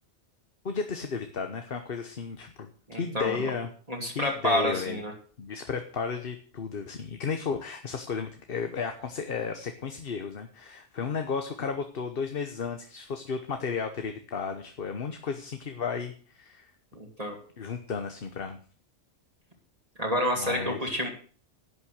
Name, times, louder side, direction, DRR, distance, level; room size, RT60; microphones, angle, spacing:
voice 1, 0.6-2.7 3.0-3.7 4.1-5.0 5.4-16.7 17.6-18.6 20.4-20.8, left 5 dB, 55° left, 7 dB, 1.2 m, -33 dB
voice 2, 2.9-3.5 3.9-5.1 17.0-17.4 20.0-21.1, equal, 30° right, 1 dB, 2.3 m, -29 dB
11.5 x 8.8 x 6.4 m, 0.43 s
omnidirectional pair, 1.2 m